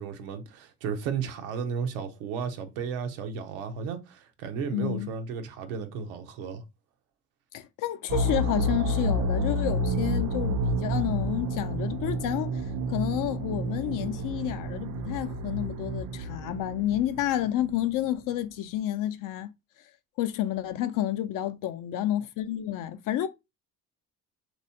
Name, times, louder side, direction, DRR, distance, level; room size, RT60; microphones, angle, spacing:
voice 1, 0.0-6.6, right 6 dB, 80° right, 0.9 m, -34 dB
voice 2, 4.7-5.1 7.5-12.6 12.9-19.5 20.2-23.3, left 12 dB, 55° left, 0.5 m, -30 dB
sound 1, 8.1-17.9, right 1 dB, 50° right, 0.5 m, -30 dB
3.3 x 3.0 x 2.7 m
hypercardioid pair, 70°, 39 cm